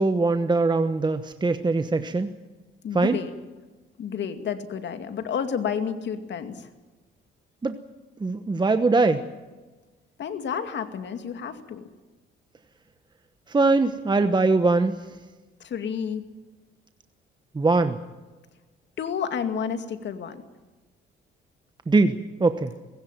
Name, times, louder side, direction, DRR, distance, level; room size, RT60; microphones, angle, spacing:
voice 1, 0.0-2.3 2.9-3.2 7.6-7.8 8.2-9.2 13.5-15.0 17.5-18.0 21.9-22.7, right 3 dB, 20° right, 9 dB, 1.1 m, -22 dB
voice 2, 2.8-3.3 4.0-6.7 10.2-11.9 15.6-16.2 19.0-20.4, left 7 dB, 65° left, 8 dB, 2.3 m, -30 dB
20.5 x 16.5 x 9.2 m, 1.2 s
cardioid pair, 90°, 20 cm